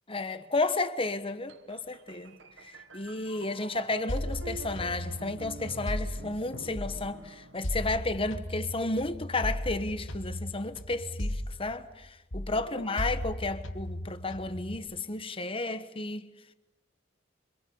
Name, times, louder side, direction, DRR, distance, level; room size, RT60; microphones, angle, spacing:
voice 1, 0.1-16.3, left 2 dB, 30° left, 1.3 m, -32 dB
sound 1, 1.5-8.2, right 3 dB, 65° right, 1.4 m, -47 dB
sound 2, 4.1-7.2 7.6-12.0 12.3-14.7, left 1 dB, 80° left, 2.3 m, -36 dB
27.0 x 25.5 x 7.1 m
head